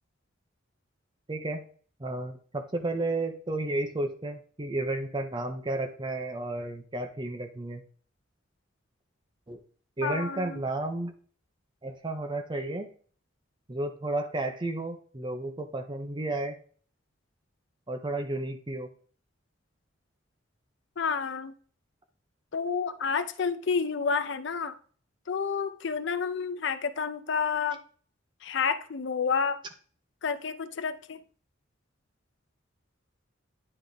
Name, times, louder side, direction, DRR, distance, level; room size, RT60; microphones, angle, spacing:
voice 1, 1.3-1.6 2.0-7.8 9.5-9.6 10.0-11.1 11.8-12.9 13.7-16.6 17.9-18.9, right 2 dB, 25° right, 6 dB, 0.6 m, -32 dB
voice 2, 10.0-10.6 21.0-21.5 22.5-24.8 25.3-27.8 28.4-29.6 30.2-31.2, left 5 dB, 65° left, 11 dB, 0.6 m, -29 dB
9.9 x 3.5 x 3.9 m, 0.43 s
head